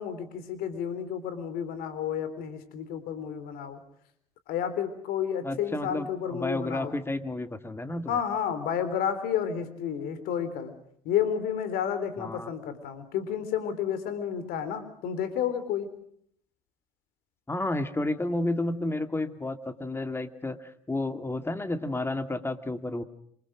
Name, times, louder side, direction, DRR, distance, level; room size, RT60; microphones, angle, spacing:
voice 1, 0.0-3.8 4.5-7.0 8.1-10.7 11.0-15.9, left 8 dB, 65° left, 12 dB, 3.9 m, -31 dB
voice 2, 5.4-8.2 12.2-12.5 17.5-20.6 20.9-23.0, left 2 dB, 15° left, 9 dB, 2.4 m, -31 dB
27.5 x 23.5 x 6.3 m, 0.67 s
hypercardioid pair, 65°, 17 cm